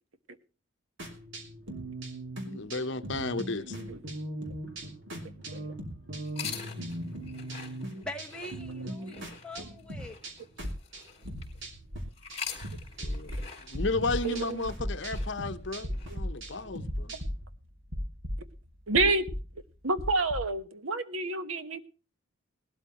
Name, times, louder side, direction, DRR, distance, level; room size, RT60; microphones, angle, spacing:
sound 1, 1.0-12.0 12.3-13.4 13.7-17.4, right 1 dB, 65° right, 3.0 m, -40 dB
voice 1, 2.5-3.8 13.0-17.1, left 3 dB, 60° left, 1.0 m, -33 dB
voice 2, 3.5-4.0 5.5-5.6 14.2-14.6 16.1-16.2 16.6-16.7 18.9-19.3 19.8-21.9, right 3 dB, 85° right, 1.3 m, -29 dB
sound 2, 6.2-11.6 12.1-16.1, left 7 dB, 30° left, 3.7 m, -45 dB
voice 3, 7.9-10.2, left 1 dB, 5° left, 1.3 m, -43 dB
sound 3, 13.0-17.6 17.9-18.7 18.9-19.5 20.0-20.5, equal, 50° right, 4.5 m, -36 dB
19.0 x 12.5 x 3.1 m
head